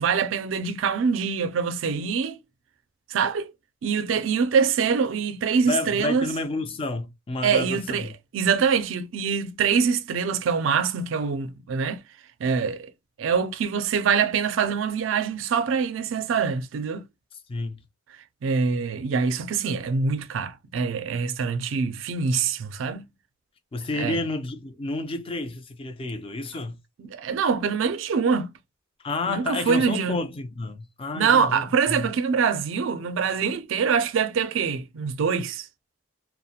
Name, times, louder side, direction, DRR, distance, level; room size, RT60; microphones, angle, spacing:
voice 1, 0.0-2.4 3.1-3.5 3.8-6.3 7.4-12.0 12.4-12.9 13.2-17.1 18.4-23.1 24.0-24.2 27.0-28.5 29.3-30.2 31.1-35.7, right 6 dB, 75° right, 0.4 m, -24 dB
voice 2, 5.7-8.1 17.5-17.8 23.7-26.8 29.0-32.1, left 2 dB, 30° left, 0.4 m, -30 dB
2.4 x 2.1 x 2.7 m
head